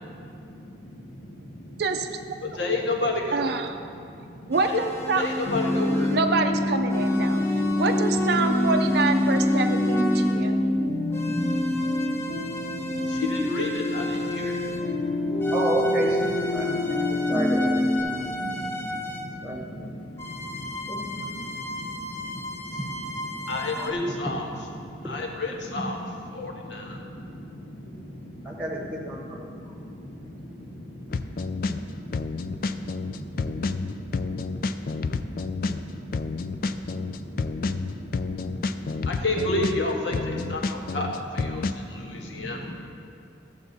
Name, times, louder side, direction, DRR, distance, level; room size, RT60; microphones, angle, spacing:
voice 1, 0.0-1.8 2.4-3.4 3.9-4.8 5.1-6.2 6.9-7.9 9.5-15.6 16.3-42.7, left 2 dB, 75° left, 0 dB, 1.4 m, -34 dB
voice 2, 3.3-3.8 4.5-5.3 6.1-7.4 7.8-10.6, right 4 dB, 55° right, 6 dB, 0.5 m, -26 dB
sound 1, 4.5-6.4 6.9-10.5 11.1-15.0 15.4-19.3 20.2-23.9, left 1 dB, 15° left, 0.7 m, -35 dB
sound 2, 5.5-18.0, left 1 dB, 30° left, 1.2 m, -25 dB
voice 3, 15.5-18.2 19.1-19.9 20.9-21.1 21.4-21.5 23.7-24.1 28.4-29.4 29.7-29.8, equal, 5° right, -1 dB, 1.3 m, -31 dB
sound 3, 31.1-31.8 32.1-35.8 36.1-39.8 40.1-41.7, left 4 dB, 50° left, 0.3 m, -29 dB
15.0 x 7.0 x 4.1 m, 2.6 s
head